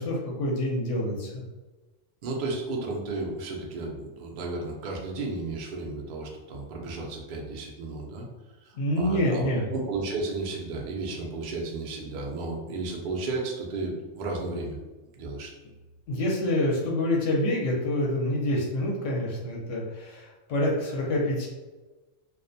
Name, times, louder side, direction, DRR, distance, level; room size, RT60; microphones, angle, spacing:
voice 1, 0.0-1.4 8.7-9.6 16.1-21.5, left 1 dB, 75° left, -2 dB, 0.9 m, -27 dB
voice 2, 2.2-8.3 8.6-14.8 15.1-15.5, right 3 dB, 65° right, 0 dB, 0.5 m, -33 dB
2.4 x 2.1 x 2.6 m, 1.2 s
omnidirectional pair, 1.3 m